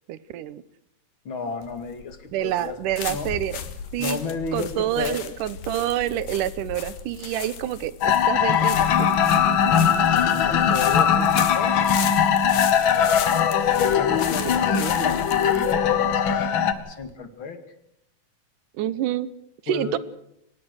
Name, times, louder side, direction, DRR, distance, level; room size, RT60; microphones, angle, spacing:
voice 1, 0.1-0.6 2.3-3.6 3.9-4.2 4.5-9.1 18.8-19.3 19.6-20.0, right 12 dB, 75° right, 17 dB, 2.4 m, -27 dB
voice 2, 1.2-2.8 3.1-3.3 4.0-5.2 9.6-11.7 13.8-17.6 19.7-20.0, left 5 dB, 40° left, 8 dB, 2.5 m, -33 dB
sound 1, 1.6-17.1, left 8 dB, 75° left, 3.3 m, -36 dB
sound 2, 8.0-16.7, left 8 dB, 60° left, 1.3 m, -20 dB
24.5 x 20.5 x 6.4 m, 0.78 s
omnidirectional pair, 3.9 m